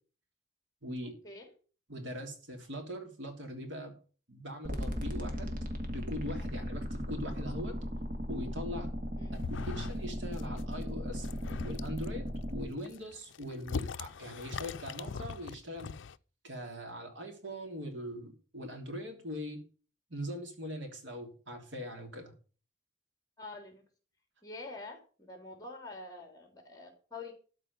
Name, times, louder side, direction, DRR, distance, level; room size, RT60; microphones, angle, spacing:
voice 1, 0.8-1.2 1.9-3.9 4.3-5.6 5.9-7.8 8.3-8.9 9.3-11.3 11.6-15.9 16.4-19.6 20.1-22.3, equal, 80° right, 4 dB, 3.2 m, -41 dB
sound 1, 4.6-12.7, equal, 45° right, 2.0 m, -37 dB
sound 2, 9.3-10.1 10.3-10.7 11.1-12.1 12.7-16.2, left 5 dB, 85° left, 0.4 m, -41 dB
voice 2, 23.4-23.8 24.4-27.3, left 3 dB, 20° left, 4 dB, 2.8 m, -46 dB
12.5 x 4.9 x 8.0 m, 0.38 s
head